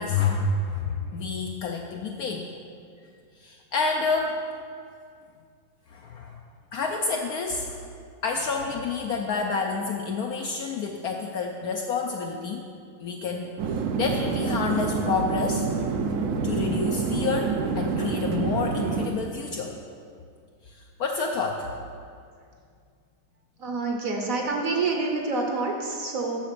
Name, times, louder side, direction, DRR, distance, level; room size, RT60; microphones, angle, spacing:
voice 1, 0.0-2.5 3.4-4.4 5.9-6.4 6.7-7.8 8.2-12.6 13.0-15.7 16.4-19.7 20.7-21.7, left 4 dB, 70° left, 2 dB, 0.9 m, -29 dB
sound 1, 13.6-19.1, right 5 dB, 75° right, 0.7 m, -27 dB
voice 2, 23.6-26.4, right 3 dB, 55° right, 1 dB, 1.1 m, -27 dB
7.7 x 5.9 x 6.6 m, 2.3 s
omnidirectional pair, 2.0 m